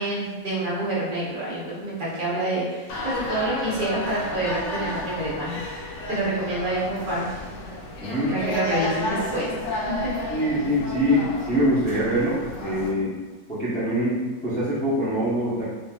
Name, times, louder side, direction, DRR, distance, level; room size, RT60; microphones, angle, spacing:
voice 1, 0.0-5.6 6.1-7.3 8.3-10.1, right 1 dB, 40° right, -7 dB, 0.9 m, -27 dB
sound 1, 2.9-12.9, left 1 dB, 65° left, 0.8 m, -32 dB
voice 2, 8.0-8.4 10.3-13.2 13.5-15.6, equal, 10° left, -10 dB, 0.5 m, -24 dB
3.2 x 2.5 x 2.3 m, 1.3 s
omnidirectional pair, 1.5 m